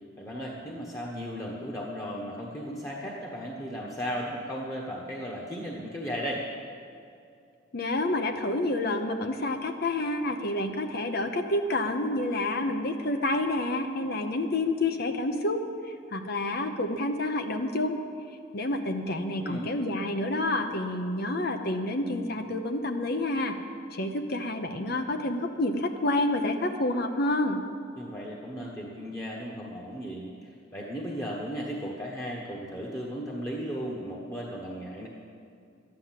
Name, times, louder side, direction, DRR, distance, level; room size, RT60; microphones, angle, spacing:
voice 1, 0.2-6.5 19.4-19.7 28.0-35.1, equal, 15° left, -3 dB, 1.2 m, -36 dB
voice 2, 7.7-18.0 18.5-23.6 23.9-27.6, left 2 dB, 50° left, 6 dB, 0.8 m, -29 dB
12.5 x 9.9 x 7.5 m, 2.4 s
head